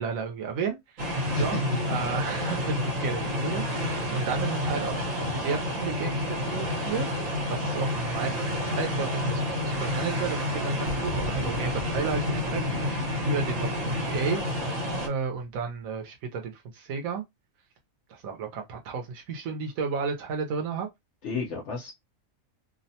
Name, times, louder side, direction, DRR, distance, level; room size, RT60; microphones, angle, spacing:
voice 1, 0.0-1.6 1.9-7.1 7.5-12.6 13.2-14.5 15.1-17.2 18.1-20.9, right 5 dB, 85° right, 1.1 m, -33 dB
sound 1, 1.0-15.1, left 1 dB, 70° right, 1.3 m, -29 dB
voice 2, 1.3-1.8 21.2-21.9, left 3 dB, 65° left, 1.0 m, -31 dB
Boom, 10.9-15.5, equal, 35° left, 0.6 m, -40 dB
2.8 x 2.1 x 2.7 m
omnidirectional pair, 1.4 m